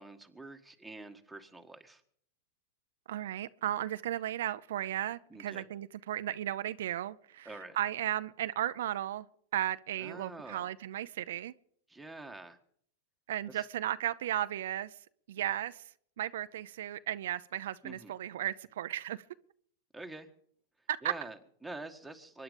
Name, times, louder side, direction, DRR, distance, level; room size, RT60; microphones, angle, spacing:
voice 1, 0.0-2.0 5.3-5.6 7.4-7.8 10.0-10.7 11.9-12.6 13.5-13.6 17.8-18.1 19.9-20.3 21.0-22.4, right 2 dB, 5° right, 1.6 m, -46 dB
voice 2, 3.1-9.3 9.5-11.5 13.3-15.0 15.3-15.9 16.2-19.2 20.9-21.1, right 12 dB, 80° right, 0.5 m, -35 dB
23.5 x 10.5 x 5.2 m
supercardioid pair, 130°, 0 cm